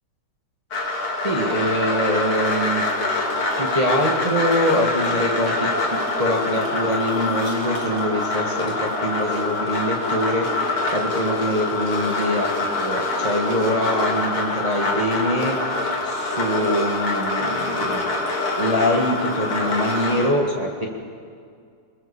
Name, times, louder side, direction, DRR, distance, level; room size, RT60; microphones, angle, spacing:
sound 1, 0.7-20.3, left 2 dB, 90° left, 3.7 m, -25 dB
voice 1, 1.2-2.9 3.2-3.3 3.6-18.3 18.6-20.9, equal, 20° right, 0 dB, 1.9 m, -24 dB
24.0 x 21.0 x 7.2 m, 2.2 s
omnidirectional pair, 2.3 m